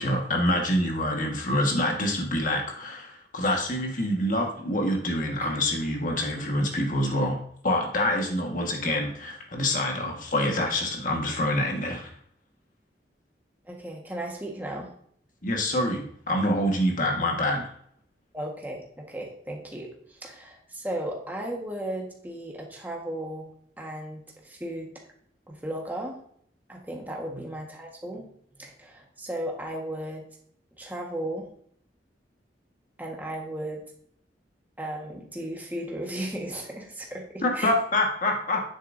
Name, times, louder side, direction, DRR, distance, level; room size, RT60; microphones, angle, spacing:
voice 1, 0.0-7.4 7.6-12.1 15.4-17.6 27.3-27.4 37.4-38.6, left 1 dB, 50° left, 1 dB, 1.6 m, -26 dB
voice 2, 13.6-14.9 18.3-23.5 23.8-24.9 25.5-26.2 26.7-28.2 28.6-30.2 30.8-31.5 33.0-33.8 34.8-37.7, right 1 dB, 10° right, 0 dB, 1.4 m, -35 dB
9.5 x 7.2 x 2.7 m, 0.63 s
head